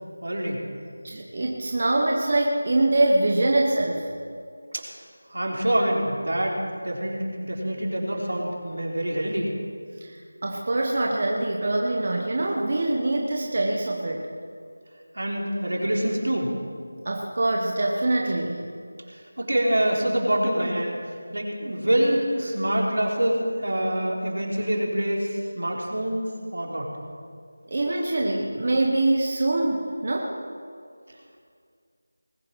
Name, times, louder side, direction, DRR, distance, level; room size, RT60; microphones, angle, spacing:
voice 1, 0.2-0.6 4.7-5.0 5.3-9.5 15.1-16.5 19.1-21.0 21.3-26.9, right 1 dB, 75° right, -2 dB, 3.8 m, -26 dB
voice 2, 1.0-4.1 10.0-14.2 17.0-18.7 27.7-30.3, right 2 dB, 30° right, 0 dB, 1.0 m, -24 dB
20.0 x 8.5 x 6.2 m, 2.2 s
figure-of-eight pair, 180°, 0 cm